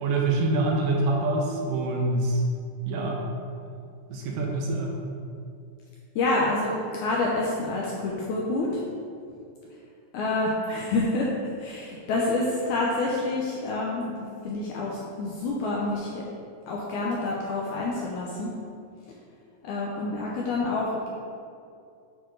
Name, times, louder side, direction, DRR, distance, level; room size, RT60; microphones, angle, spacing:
voice 1, 0.0-2.4 2.9-3.2 4.1-5.0, right 2 dB, 75° right, -1 dB, 2.4 m, -25 dB
voice 2, 6.2-8.8 10.1-11.3 11.6-16.2 16.7-18.5 19.6-21.1, left 2 dB, 80° left, -3 dB, 1.8 m, -28 dB
8.8 x 4.7 x 3.8 m, 2.4 s
omnidirectional pair, 4.1 m